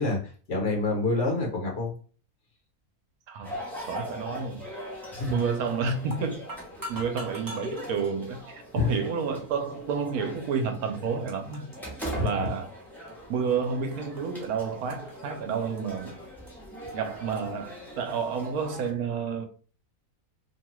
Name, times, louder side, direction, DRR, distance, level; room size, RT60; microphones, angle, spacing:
voice 1, 0.0-1.9 5.1-5.4 8.7-8.9 12.1-12.5, left 3 dB, 55° left, 1.2 m, -27 dB
voice 2, 3.3-4.7 5.3-6.4 6.9-11.7 12.2-12.7 13.3-16.2 16.9-19.5, right 5 dB, 90° right, 1.1 m, -30 dB
sound 1, 3.4-18.9, equal, ahead, 0.7 m, -41 dB
sound 2, 5.4-5.7 6.0-8.1 8.9-9.1 9.8-9.9 10.7-10.8 11.0-11.8 12.0-13.7 13.9-14.5 14.9-16.1 16.5-16.6 16.9-17.0 17.3-17.5, equal, 25° right, 0.4 m, -43 dB
2.9 x 2.3 x 3.0 m
omnidirectional pair, 1.6 m